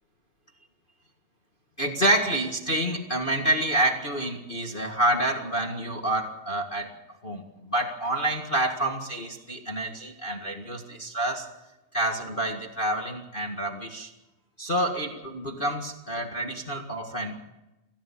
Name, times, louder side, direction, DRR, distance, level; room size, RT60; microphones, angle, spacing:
voice 1, 1.8-6.9 7.2-11.5 11.9-14.1 14.6-17.4, right 1 dB, 35° left, 3 dB, 0.7 m, -28 dB
26.0 x 16.0 x 7.3 m, 0.97 s
omnidirectional pair, 4.2 m